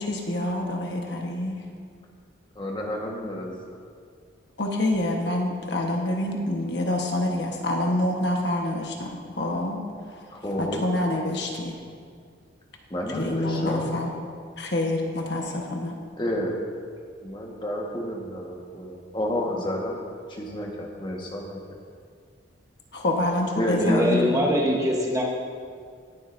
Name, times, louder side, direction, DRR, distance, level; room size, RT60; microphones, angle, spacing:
voice 1, 0.0-1.6 4.6-9.8 10.6-11.8 13.1-14.1 14.6-15.9 22.9-24.4, left 1 dB, 60° left, 1 dB, 1.2 m, -27 dB
voice 2, 2.5-3.8 10.3-10.9 12.9-13.9 16.2-16.6 17.2-20.0 20.3-21.6 23.5-24.8, equal, 25° left, -1 dB, 1.3 m, -30 dB
voice 3, 23.8-25.2, equal, 15° right, -2 dB, 1.1 m, -23 dB
20.0 x 7.7 x 2.6 m, 2.1 s
head